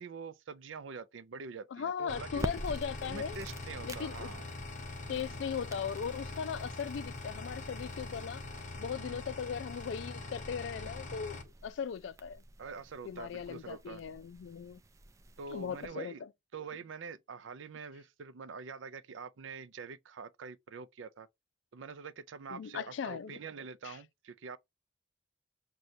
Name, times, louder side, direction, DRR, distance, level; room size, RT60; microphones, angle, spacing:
voice 1, 0.0-2.5 3.0-4.4 5.1-5.4 8.9-9.2 12.6-14.0 15.4-16.2 16.5-21.3 21.7-24.6, right 5 dB, 85° right, 0.5 m, -45 dB
voice 2, 1.7-3.4 3.8-4.3 5.1-8.4 8.8-12.4 13.0-14.8 15.5-16.1 22.5-23.4 23.8-24.0, left 7 dB, 75° left, 0.3 m, -38 dB
sound 1, 2.1-11.4, left 2 dB, 40° left, 1.0 m, -43 dB
sound 2, 2.3-15.9, right 1 dB, 15° right, 0.3 m, -48 dB
6.3 x 2.3 x 2.7 m
head